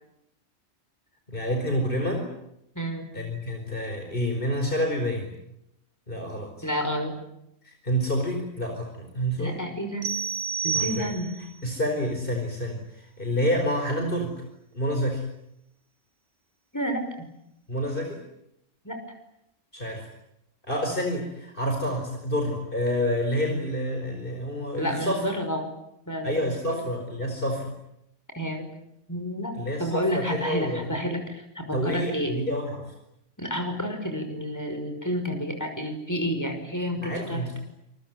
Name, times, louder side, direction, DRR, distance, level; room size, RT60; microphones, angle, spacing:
voice 1, 1.3-2.3 3.1-5.3 6.1-6.7 7.6-9.6 10.7-11.1 11.4-14.3 14.7-15.2 17.7-18.2 19.7-20.1 20.6-25.2 26.2-27.7 29.5-30.9 31.7-32.9 37.0-37.6, equal, 45° left, 3 dB, 5.0 m, -28 dB
voice 2, 2.8-3.1 6.6-7.2 9.4-10.1 10.6-11.3 16.7-17.3 18.8-19.0 24.8-25.7 26.1-26.8 28.3-28.7 29.1-32.4 33.4-37.6, equal, 15° left, 5 dB, 5.8 m, -30 dB
sound 1, 10.0-11.6, right 7 dB, 85° right, 1.6 m, -30 dB
28.0 x 22.5 x 9.2 m, 0.81 s
omnidirectional pair, 1.3 m